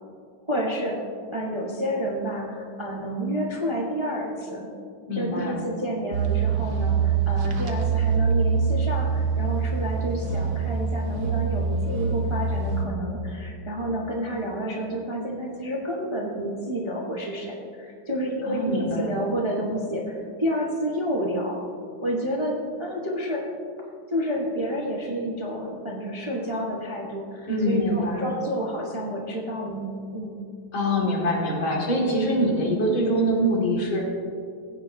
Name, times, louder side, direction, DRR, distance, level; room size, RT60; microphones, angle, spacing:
voice 1, 0.5-1.0 1.3-4.7 5.2-21.6 22.0-23.4 23.8-29.9 30.1-30.4, equal, 25° right, -2 dB, 0.6 m, -29 dB
voice 2, 5.1-5.6 18.4-19.2 27.5-28.3 30.7-34.1, equal, 80° left, -2 dB, 2.9 m, -24 dB
sound 1, 6.1-12.8, right 5 dB, 55° right, 1.3 m, -24 dB
16.0 x 9.1 x 2.7 m, 2.3 s
omnidirectional pair, 2.2 m